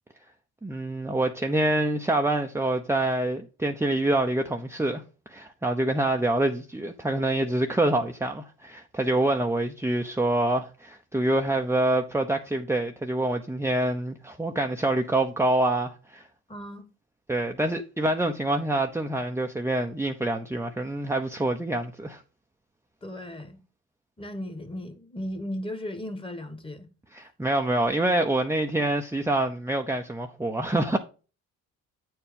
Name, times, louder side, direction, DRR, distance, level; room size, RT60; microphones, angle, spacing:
voice 1, 0.6-5.0 5.3-16.2 17.3-22.2 27.1-31.0, right 1 dB, 10° right, 0.8 m, -26 dB
voice 2, 16.5-16.8 23.0-23.6 24.2-26.9, left 1 dB, 15° left, 1.7 m, -36 dB
8.5 x 4.6 x 5.2 m
supercardioid pair, 70°, 33 cm